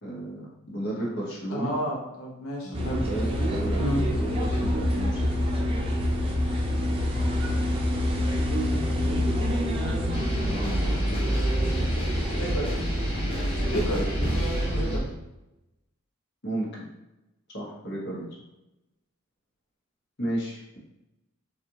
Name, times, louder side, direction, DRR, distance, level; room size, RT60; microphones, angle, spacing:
voice 1, 0.0-1.8 2.6-5.3 10.2-11.0 13.6-13.8 16.4-16.8 17.5-18.3 20.2-20.8, right 1 dB, 55° left, -4 dB, 1.2 m, -34 dB
voice 2, 1.5-3.0 3.8-4.0 11.1-11.9 12.3-12.7 13.7-15.1, equal, 80° left, -2 dB, 0.8 m, -32 dB
sound 1, 2.7-15.0, equal, 25° right, 0.6 m, -26 dB
sound 2, 10.1-15.1, left 1 dB, 30° left, 1.0 m, -34 dB
4.1 x 2.5 x 3.0 m, 0.93 s
head